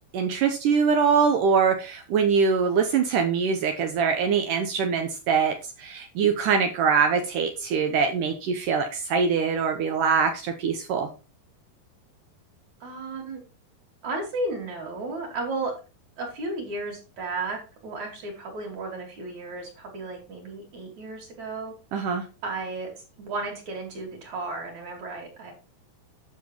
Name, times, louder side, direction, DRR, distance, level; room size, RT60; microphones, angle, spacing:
voice 1, 0.1-11.1 21.9-22.2, right 6 dB, 70° right, 6 dB, 2.1 m, -23 dB
voice 2, 12.8-13.4 14.0-15.7 16.2-21.7 22.4-22.9 23.2-25.5, right 2 dB, 50° right, 1 dB, 3.8 m, -33 dB
9.4 x 6.6 x 4.4 m, 0.32 s
omnidirectional pair, 4.6 m